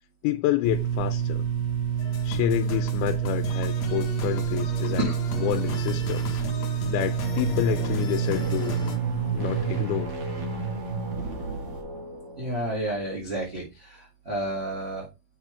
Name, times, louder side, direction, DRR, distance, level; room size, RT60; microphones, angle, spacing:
voice 1, 0.2-1.4 2.2-5.1 5.4-6.4 6.9-8.8 9.3-10.2, left 14 dB, 90° left, 2.5 m, -28 dB
sound 1, 0.6-11.8, right 8 dB, 65° right, 5.4 m, -29 dB
sound 2, 2.0-9.0, left 5 dB, 55° left, 2.2 m, -37 dB
sound 3, 7.1-12.8, right 2 dB, 45° right, 2.2 m, -33 dB
voice 2, 12.4-15.1, right 1 dB, 20° right, 1.8 m, -30 dB
8.3 x 5.9 x 3.4 m
omnidirectional pair, 4.4 m